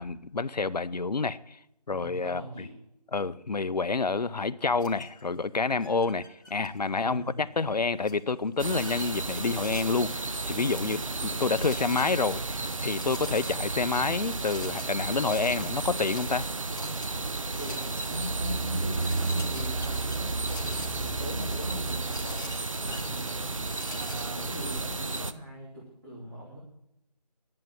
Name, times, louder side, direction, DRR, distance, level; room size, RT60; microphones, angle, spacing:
voice 1, 0.0-1.6 1.9-2.4 3.1-16.5, left 4 dB, 75° left, 0.7 m, -28 dB
voice 2, 1.9-2.7 7.0-7.4 17.6-23.5 23.9-26.6, equal, 30° right, 2.8 m, -40 dB
sound 1, 4.8-5.2 5.8-7.0 8.0-10.2 11.4-12.4 12.9-13.7 14.3-18.1 18.6-18.7 19.0-24.3, left 2 dB, 30° left, 1.2 m, -47 dB
sound 2, 8.6-25.3, right 3 dB, 50° right, 0.7 m, -33 dB
sound 3, 18.0-22.4 22.9-23.0, right 3 dB, 75° right, 1.1 m, -33 dB
10.5 x 7.6 x 7.7 m
figure-of-eight pair, 170°, 21 cm